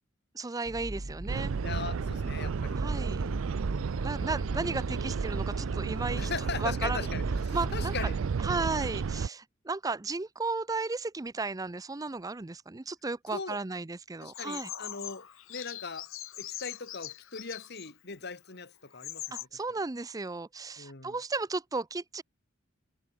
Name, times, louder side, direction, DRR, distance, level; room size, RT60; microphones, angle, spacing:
voice 1, 0.3-1.5 2.8-3.2 4.0-6.3 6.6-7.1 7.5-7.9 8.4-14.7 19.3-22.2, right 3 dB, 15° right, 0.5 m, -34 dB
sound 1, 0.7-8.1, right 1 dB, 45° right, 1.3 m, -38 dB
sound 2, 1.3-9.3, right 5 dB, 75° right, 0.4 m, -32 dB
voice 2, 1.6-2.8 6.2-8.2 8.8-8.9 13.3-13.6 14.2-16.1 16.4-19.6 20.8-21.2, left 4 dB, 55° left, 2.2 m, -40 dB
Bird vocalization bird call bird song, 14.3-17.9 18.5-18.6 18.9-19.4, left 13 dB, 80° left, 1.3 m, -42 dB
head